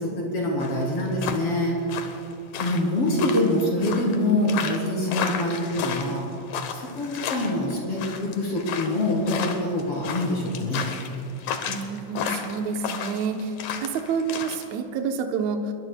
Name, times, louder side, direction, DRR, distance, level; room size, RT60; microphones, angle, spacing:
voice 1, 0.0-1.8 2.6-6.3 6.7-10.9, left 1 dB, 45° left, -3 dB, 4.2 m, -25 dB
sound 1, 0.6-14.7, left 7 dB, 70° left, 2.2 m, -33 dB
voice 2, 11.7-13.5 13.8-15.7, right 5 dB, 70° right, 4 dB, 1.9 m, -28 dB
27.5 x 22.0 x 2.3 m, 2.7 s
omnidirectional pair, 3.8 m